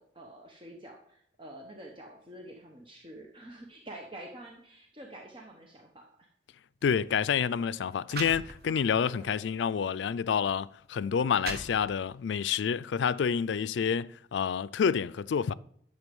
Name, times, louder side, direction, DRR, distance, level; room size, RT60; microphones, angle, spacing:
voice 1, 0.0-6.3 9.1-9.4, right 1 dB, 30° right, 1.1 m, -48 dB
voice 2, 6.8-15.5, left 7 dB, 80° left, 0.4 m, -28 dB
sound 1, 6.8-7.0 7.7-7.8 8.1-9.0 9.5-9.7 10.5-10.6 11.1-12.2, right 3 dB, 60° right, 1.5 m, -40 dB
11.5 x 7.0 x 5.3 m
head